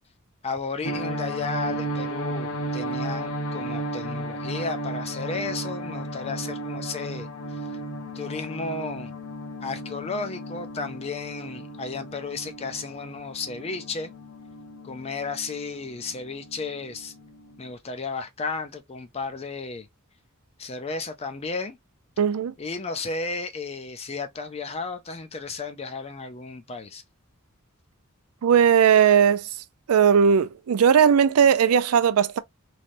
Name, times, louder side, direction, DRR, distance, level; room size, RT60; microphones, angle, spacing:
voice 1, 0.4-7.6 8.1-9.1 9.6-14.1 14.8-17.1 17.6-19.9 20.6-21.8 22.6-27.0, left 4 dB, 30° left, 0.4 m, -33 dB
sound 1, 0.8-17.7, right 1 dB, 60° left, 0.8 m, -34 dB
voice 2, 22.2-22.5 28.4-29.5 29.9-32.4, right 7 dB, 90° right, 0.4 m, -18 dB
3.2 x 2.7 x 2.5 m
head